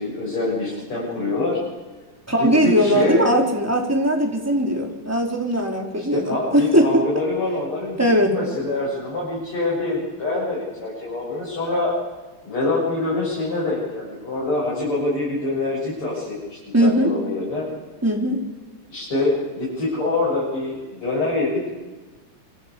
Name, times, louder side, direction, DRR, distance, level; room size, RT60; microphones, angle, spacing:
voice 1, 0.0-1.6 2.3-3.3 6.0-8.0 8.3-11.9 12.4-17.7 18.9-21.6, left 2 dB, 85° left, -6 dB, 8.0 m, -25 dB
voice 2, 2.3-7.1 8.0-8.4 16.7-17.1 18.0-18.4, equal, 5° right, 1 dB, 3.7 m, -19 dB
27.0 x 25.5 x 8.5 m, 1.2 s
omnidirectional pair, 2.4 m